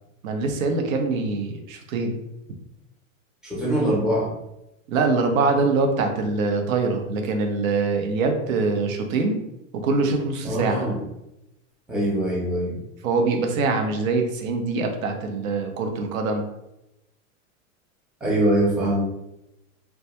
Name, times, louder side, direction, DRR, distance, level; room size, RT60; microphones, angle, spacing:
voice 1, 0.2-2.2 4.9-9.4 9.7-10.9 13.0-16.5, right 3 dB, 75° right, 4 dB, 0.7 m, -24 dB
voice 2, 3.4-4.3 10.4-11.0 11.9-12.8 18.2-19.0, right 1 dB, ahead, -6 dB, 0.4 m, -23 dB
2.2 x 2.2 x 2.8 m, 0.87 s
hypercardioid pair, 125°, 41 cm